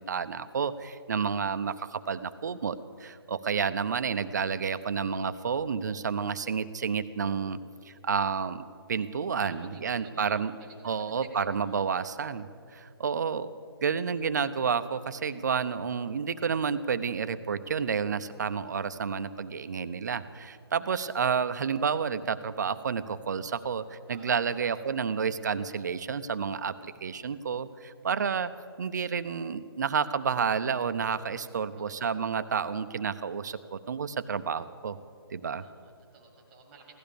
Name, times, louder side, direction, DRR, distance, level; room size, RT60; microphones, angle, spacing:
voice 1, 0.0-7.6 7.9-10.5 10.8-13.5 13.8-28.5 28.8-35.0 35.3-35.6, right 6 dB, 45° right, 12 dB, 0.6 m, -30 dB
voice 2, 2.0-2.9 9.4-11.1 11.6-11.8 24.1-24.3 24.6-24.8 31.7-32.2 35.6-37.0, right 4 dB, 5° right, 1 dB, 1.6 m, -54 dB
16.5 x 12.5 x 6.9 m, 2.4 s
figure-of-eight pair, 155°, 13 cm